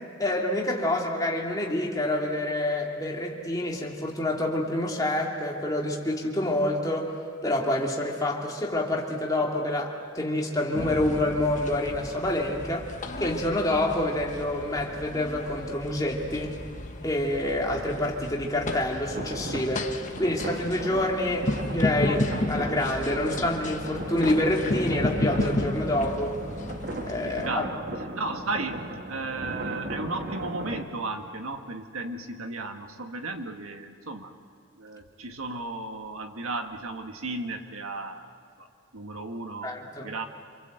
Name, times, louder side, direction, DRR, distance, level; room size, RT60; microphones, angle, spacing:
voice 1, 0.2-7.1 7.4-12.9 13.2-16.5 17.0-19.9 20.2-26.4 27.0-27.7 39.6-40.1, left 1 dB, 15° left, -2 dB, 2.7 m, -27 dB
sound 1, 10.7-27.5, left 1 dB, 35° left, 1.2 m, -33 dB
sound 2, 19.1-30.8, right 1 dB, 45° right, 1.5 m, -36 dB
voice 2, 27.2-27.8 28.1-34.3 34.8-38.3 38.6-38.7 38.9-39.8 40.0-40.2, right 3 dB, 85° right, 5 dB, 1.8 m, -34 dB
27.5 x 24.0 x 8.0 m, 2.6 s
head